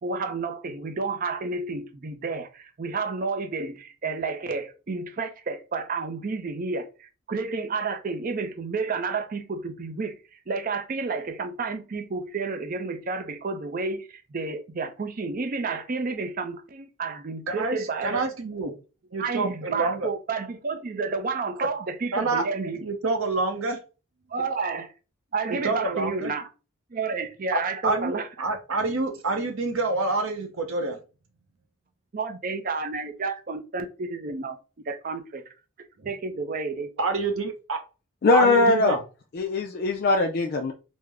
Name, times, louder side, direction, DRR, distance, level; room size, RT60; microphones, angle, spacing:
voice 1, 0.0-18.2 19.2-22.9 24.3-24.9 25.3-26.5 26.9-28.3 32.1-34.6 34.9-35.4 36.0-36.9, right 4 dB, 40° right, 0.5 m, -30 dB
voice 2, 17.5-18.7 19.1-20.1 22.1-22.4 22.8-23.8 25.5-26.3 27.5-31.0 37.0-37.8 38.3-39.0, right 3 dB, 80° right, 0.7 m, -27 dB
voice 3, 38.2-39.0 39.3-40.7, left 3 dB, 45° left, 0.3 m, -21 dB
3.5 x 2.0 x 3.3 m
head